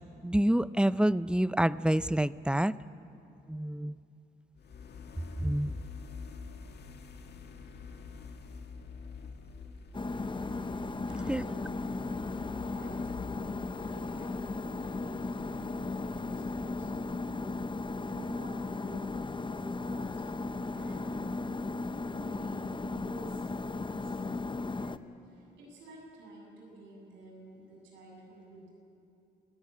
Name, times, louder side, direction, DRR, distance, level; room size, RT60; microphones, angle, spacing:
voice 1, 0.2-2.7 3.5-4.0 5.4-5.8 11.3-11.4, right 1 dB, 5° right, 17 dB, 0.5 m, -27 dB
sound 1, 4.6-18.4, left 5 dB, 60° left, 1.8 m, -47 dB
sound 2, 9.9-25.0, left 3 dB, 25° left, 0.9 m, -36 dB
voice 2, 10.7-16.9 17.3-20.3 20.7-21.2 22.1-28.7, right 1 dB, 85° right, -1 dB, 7.5 m, -51 dB
21.5 x 16.0 x 9.7 m, 2.8 s
supercardioid pair, 60°, 19 cm